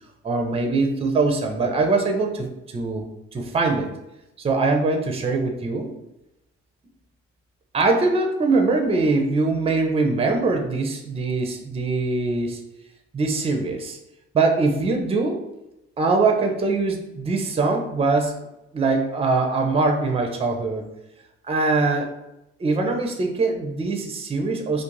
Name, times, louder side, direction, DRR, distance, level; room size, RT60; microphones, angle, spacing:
voice 1, 0.2-3.1 3.3-3.9 4.4-5.9 7.7-12.6 13.1-14.0 14.3-15.4 16.0-18.4 18.7-20.8 21.4-22.1 22.6-24.8, right 3 dB, 20° right, 4 dB, 0.5 m, -22 dB
2.4 x 2.1 x 3.1 m, 0.91 s
hypercardioid pair, 50°, 31 cm